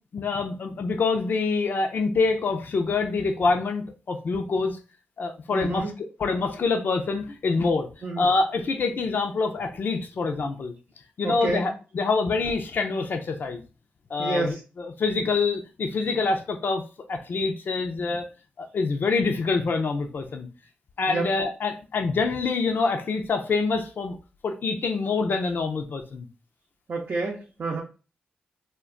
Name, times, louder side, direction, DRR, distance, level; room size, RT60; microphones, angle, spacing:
voice 1, 0.1-4.8 5.2-5.9 6.2-7.9 8.2-10.7 11.2-13.6 14.1-16.8 17.1-18.3 18.6-20.5 21.0-24.2 24.4-26.3, left 4 dB, 60° left, 4 dB, 0.5 m, -26 dB
voice 2, 5.5-5.9 8.0-8.3 11.2-11.7 14.2-14.6 21.1-21.3 26.9-27.8, right 3 dB, 55° right, -3 dB, 0.6 m, -29 dB
2.2 x 2.2 x 3.6 m, 0.33 s
supercardioid pair, 40°, 4 cm